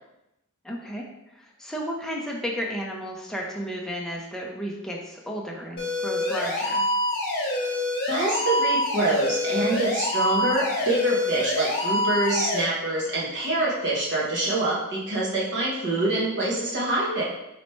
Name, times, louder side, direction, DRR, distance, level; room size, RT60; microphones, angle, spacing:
voice 1, 0.6-6.9, equal, ahead, -2 dB, 0.6 m, -33 dB
sound 1, 5.8-12.6, left 1 dB, 45° left, 1.1 m, -26 dB
voice 2, 8.1-17.2, right 2 dB, 55° right, -5 dB, 1.2 m, -25 dB
4.2 x 3.1 x 3.2 m, 0.89 s
head